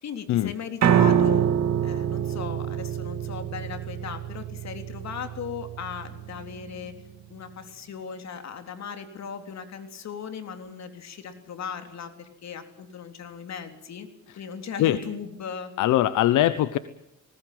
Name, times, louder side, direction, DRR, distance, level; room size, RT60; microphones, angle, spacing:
voice 1, 0.0-1.5 1.8-6.9 7.3-14.1 14.4-15.7, left 7 dB, 60° left, 7 dB, 3.6 m, -37 dB
Piano, 0.8-7.0, right 9 dB, 60° right, 2.6 m, -26 dB
voice 2, 15.8-16.8, left 13 dB, 85° left, 14 dB, 1.0 m, -21 dB
19.5 x 19.0 x 9.4 m, 0.79 s
cardioid pair, 90°, 30 cm